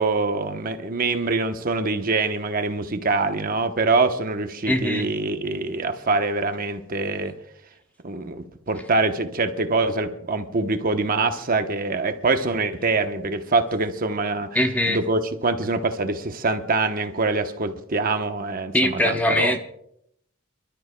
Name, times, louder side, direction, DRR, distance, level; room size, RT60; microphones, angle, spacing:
voice 1, 0.0-7.3 8.0-14.5 14.9-19.6, right 3 dB, 45° right, 7 dB, 1.0 m, -24 dB
voice 2, 4.7-5.1 14.5-15.0 18.7-19.6, left 1 dB, 10° left, 5 dB, 0.8 m, -21 dB
29.5 x 12.5 x 2.3 m, 0.72 s
head